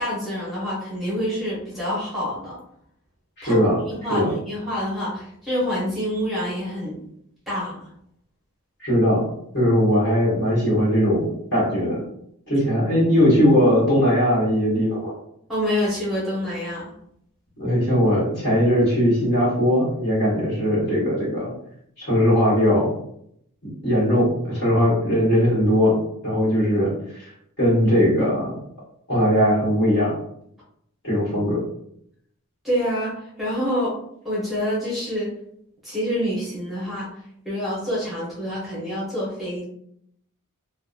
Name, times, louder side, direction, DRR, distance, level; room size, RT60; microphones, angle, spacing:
voice 1, 0.0-2.6 3.4-7.0 7.5-7.8 15.5-16.9 32.6-34.0 34.2-35.3 35.8-37.1 37.4-39.6, equal, ahead, -8 dB, 0.8 m, -27 dB
voice 2, 3.4-3.8 4.1-4.3 8.8-9.2 9.5-12.0 12.5-15.1 17.6-21.5 22.0-22.9 23.8-26.0 26.2-26.9 27.2-27.3 27.6-28.6 29.1-30.1 31.0-31.6, equal, 55° left, -7 dB, 1.3 m, -19 dB
2.6 x 2.1 x 2.4 m, 0.71 s
head